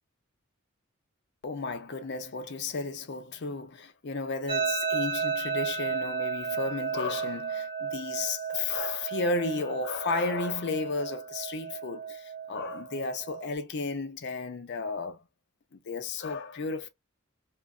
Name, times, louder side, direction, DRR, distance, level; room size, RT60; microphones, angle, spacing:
voice 1, 1.4-15.2 15.7-16.9, left 3 dB, 60° left, 0.6 m, -33 dB
sound 1, 4.5-13.5, right 5 dB, 25° right, 0.4 m, -34 dB
2.5 x 2.4 x 2.4 m
head